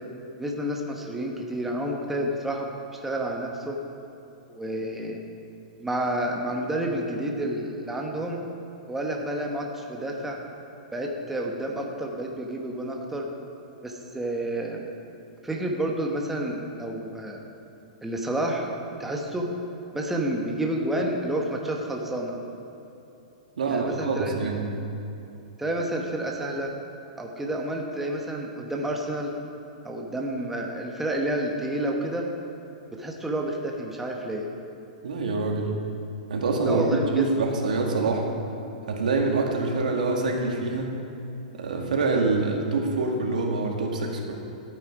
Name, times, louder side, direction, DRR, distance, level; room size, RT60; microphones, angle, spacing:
voice 1, 0.4-3.8 4.5-5.2 5.8-8.4 8.9-10.4 10.9-13.3 13.8-14.9 15.4-17.4 18.0-18.7 19.0-19.5 19.9-22.4 23.6-24.6 25.6-26.7 27.2-29.3 29.8-32.3 32.9-34.5 36.6-37.3, right 1 dB, 5° right, 0 dB, 1.1 m, -30 dB
voice 2, 23.6-24.7 35.0-35.7 36.3-38.3 38.9-41.0 41.5-44.3, right 3 dB, 90° right, 1 dB, 1.9 m, -25 dB
13.5 x 9.1 x 4.8 m, 2.9 s
hypercardioid pair, 145°, 4 cm